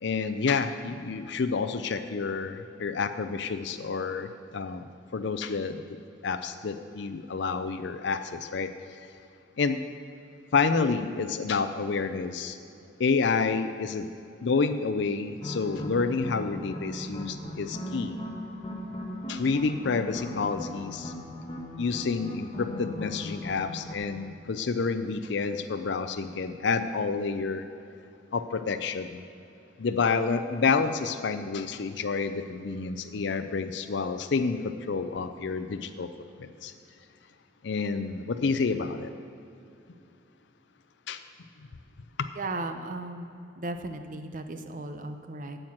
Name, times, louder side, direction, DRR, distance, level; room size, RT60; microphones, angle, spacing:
voice 1, 0.0-5.8 6.2-8.7 9.6-9.8 10.5-12.6 13.0-14.1 14.4-18.2 19.3-21.1 21.8-27.7 28.3-29.2 29.8-36.1 36.4-36.7 37.6-39.1 41.1-41.2 42.2-42.3, left 4 dB, 65° left, 9 dB, 0.5 m, -29 dB
sound 1, 15.4-23.9, left 1 dB, 30° left, 1.3 m, -38 dB
voice 2, 42.4-43.3 43.6-45.6, right 2 dB, 45° right, 7 dB, 0.8 m, -36 dB
8.8 x 7.9 x 7.4 m, 2.7 s
head